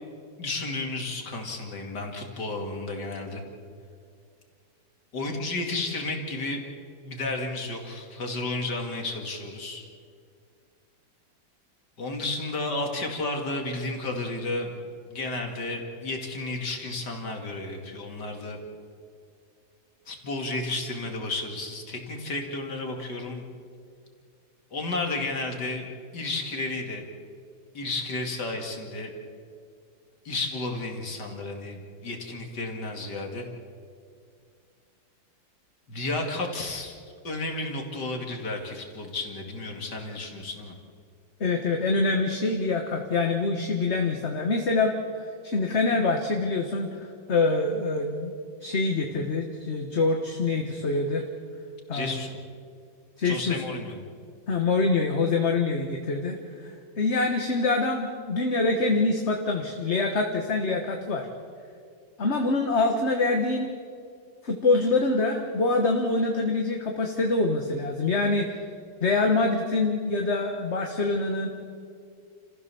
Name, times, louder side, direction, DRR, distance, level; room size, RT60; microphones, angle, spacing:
voice 1, 0.4-3.4 5.1-6.6 7.0-9.9 12.0-14.7 15.1-18.6 20.1-23.4 24.7-25.9 26.1-27.0 27.7-29.1 30.2-33.5 35.9-37.0 37.2-40.7 51.9-52.3 53.2-54.0, left 2 dB, 55° left, 2 dB, 2.9 m, -32 dB
voice 2, 41.4-48.3 48.6-51.2 51.9-52.3 53.2-53.6 54.5-61.3 62.2-63.7 64.4-68.6 69.0-71.5, left 3 dB, 35° left, 3 dB, 1.4 m, -25 dB
29.5 x 15.0 x 7.0 m, 2.2 s
omnidirectional pair, 2.2 m